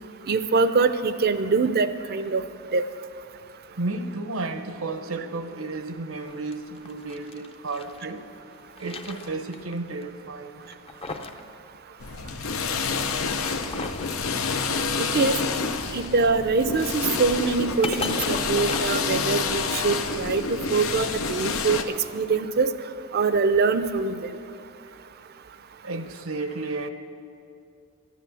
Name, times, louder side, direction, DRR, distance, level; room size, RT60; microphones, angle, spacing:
voice 1, 0.3-2.4 2.7-2.8 15.0-15.4 15.9-20.4 20.7-21.8 22.1-22.7 23.1-24.2, right 4 dB, 50° right, 0.5 m, -23 dB
voice 2, 3.7-8.2 8.8-10.6 13.7-13.8 24.8-25.0 25.8-26.9, right 3 dB, 75° right, 0.8 m, -33 dB
sound 1, 6.2-8.0 8.5-9.7 10.0-10.1 10.6-11.4 11.7-11.8 13.0-14.1 16.1-20.1, left 3 dB, 30° left, 0.6 m, -37 dB
sound 2, 12.0-21.8, left 4 dB, 90° left, 0.7 m, -28 dB
13.0 x 9.3 x 6.9 m
head